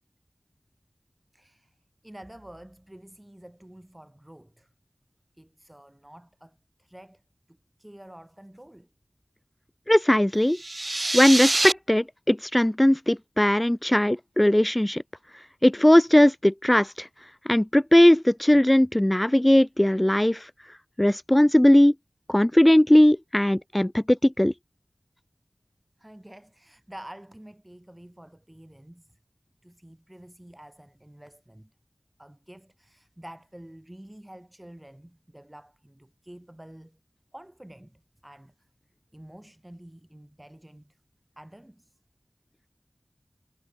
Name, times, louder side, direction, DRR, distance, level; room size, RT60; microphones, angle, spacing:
voice 1, 1.3-1.7 2.0-4.7 5.4-7.2 7.5-8.9 17.5-17.6 26.0-29.2 29.6-31.7 32.2-37.0 37.3-38.5 39.1-41.0 41.4-42.0, right 1 dB, 15° right, 7.7 m, -48 dB
voice 2, 9.9-10.6 11.1-15.0 15.6-17.1 17.5-20.5 21.0-21.9 22.3-24.5, left 1 dB, 15° left, 0.6 m, -19 dB
sound 1, 10.5-11.7, right 2 dB, 45° right, 1.1 m, -25 dB
wide cardioid pair, 45°, 0 cm